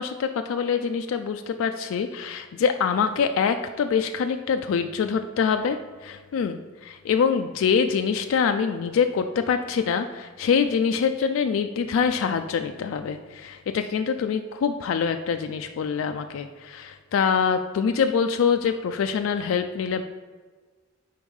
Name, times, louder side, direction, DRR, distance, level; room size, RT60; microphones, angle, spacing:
voice 1, 0.0-20.0, left 6 dB, 70° left, 7 dB, 0.3 m, -25 dB
4.7 x 4.5 x 5.3 m, 1.4 s
head